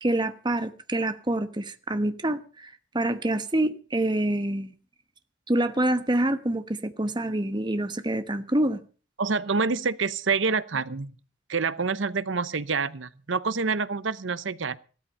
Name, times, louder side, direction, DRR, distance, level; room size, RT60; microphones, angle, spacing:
voice 1, 0.0-4.7 5.5-8.8, right 1 dB, 25° right, 1.1 m, -26 dB
voice 2, 9.2-11.1 11.5-14.8, right 4 dB, 75° right, 0.9 m, -27 dB
15.5 x 13.5 x 5.4 m
head